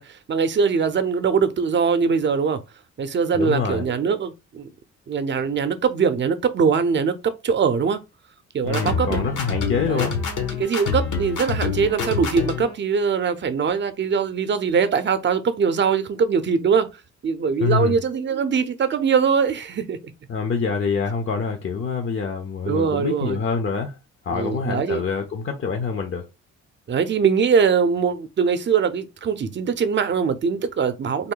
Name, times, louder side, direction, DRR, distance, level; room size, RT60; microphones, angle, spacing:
voice 1, 0.0-2.6 3.0-4.7 5.1-7.1 7.4-8.0 8.5-9.2 9.9-10.1 10.6-16.9 17.2-20.0 22.6-23.4 24.3-25.0 26.9-31.3, right 6 dB, 40° right, 0.6 m, -22 dB
voice 2, 3.3-3.8 8.6-10.2 17.6-17.9 20.3-24.0 24.2-26.3, left 5 dB, 45° left, 0.7 m, -25 dB
sound 1, 8.7-12.7, left 5 dB, 75° left, 1.2 m, -26 dB
3.6 x 2.2 x 3.7 m
cardioid pair, 90°, 30 cm